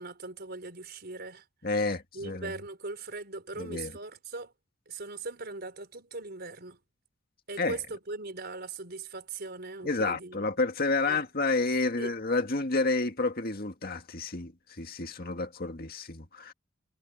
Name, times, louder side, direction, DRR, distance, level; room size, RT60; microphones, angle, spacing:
voice 1, 0.0-1.4 2.1-4.5 4.9-6.8 7.5-10.5 11.1-11.2 12.0-12.1, right 3 dB, 50° right, 4.7 m, -40 dB
voice 2, 1.6-2.5 3.6-3.9 7.6-7.8 9.8-16.5, left 3 dB, 50° left, 2.0 m, -30 dB
head